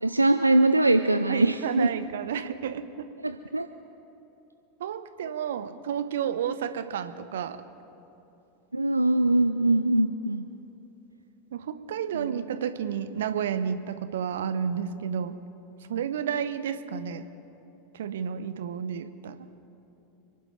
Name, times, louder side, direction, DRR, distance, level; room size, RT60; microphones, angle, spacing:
voice 1, 0.0-1.9 3.2-3.7 5.2-5.3 8.7-10.4 12.1-12.4, right 2 dB, 90° right, 8 dB, 0.4 m, -22 dB
voice 2, 1.3-3.1 4.8-7.6 11.5-15.4 15.9-17.2 17.9-19.5, right 8 dB, 65° right, 11 dB, 0.8 m, -31 dB
29.0 x 11.5 x 3.3 m, 2.9 s
figure-of-eight pair, 85°, 0 cm